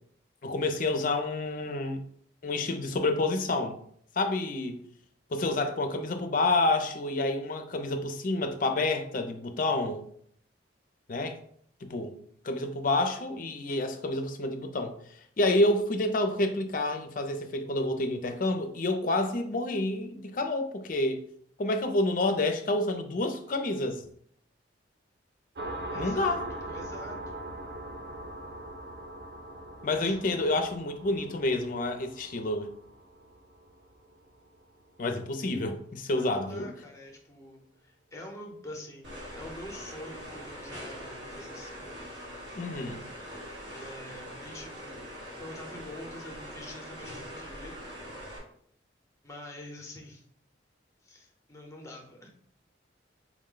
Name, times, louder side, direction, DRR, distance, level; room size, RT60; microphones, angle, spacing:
voice 1, 0.4-2.0 2.4-3.8 4.2-4.8 5.3-10.0 11.1-11.4 11.8-12.2 12.4-15.0 15.4-21.2 21.6-24.0 25.9-26.4 29.8-32.7 35.0-36.7 42.6-43.0, left 2 dB, 45° left, 0.5 m, -28 dB
sound 1, 25.6-34.8, right 1 dB, 55° right, 0.5 m, -41 dB
voice 2, 25.9-27.5 29.9-30.5 36.1-42.0 43.7-45.0 45.4-47.8 49.2-50.2 51.0-52.3, left 1 dB, 15° left, 0.7 m, -46 dB
sound 2, 39.0-48.4, equal, 75° right, 1.5 m, -43 dB
4.8 x 2.1 x 3.7 m
head